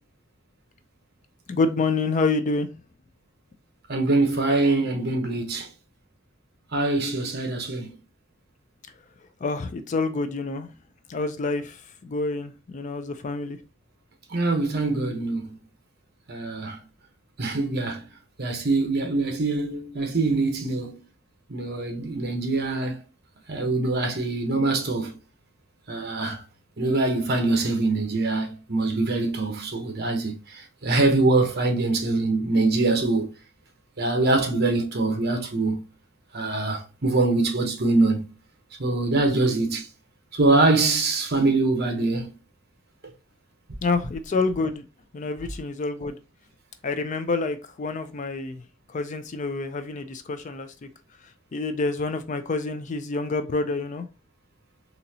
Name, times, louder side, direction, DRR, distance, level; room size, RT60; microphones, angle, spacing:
voice 1, 1.5-2.7 9.4-10.7 11.1-11.8 12.0-13.6 43.8-44.9 45.1-46.2 46.8-48.6 48.9-50.7 51.5-54.1, left 3 dB, 40° left, 0.4 m, -27 dB
voice 2, 3.9-5.7 6.7-7.9 14.3-15.5 16.3-16.8 17.4-18.0 18.4-20.9 21.5-23.0 23.5-25.1 25.9-26.4 26.8-30.4 30.8-33.3 34.0-35.8 36.3-38.2 38.8-39.9 40.3-42.3, right 2 dB, 55° right, 1.0 m, -23 dB
4.0 x 2.8 x 2.7 m
head